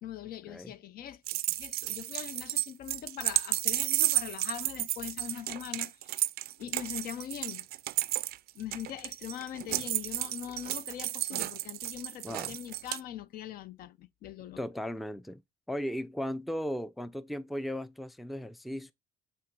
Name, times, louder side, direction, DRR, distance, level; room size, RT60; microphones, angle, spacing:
voice 1, 0.0-6.3 6.6-7.7 8.5-14.6, left 10 dB, 60° left, 0.5 m, -42 dB
sound 1, 1.3-13.0, right 16 dB, 65° right, 0.4 m, -32 dB
voice 2, 12.2-12.6 14.6-15.4 15.7-18.9, equal, ahead, 0.4 m, -36 dB
5.8 x 3.5 x 5.2 m
cardioid pair, 110°, 17 cm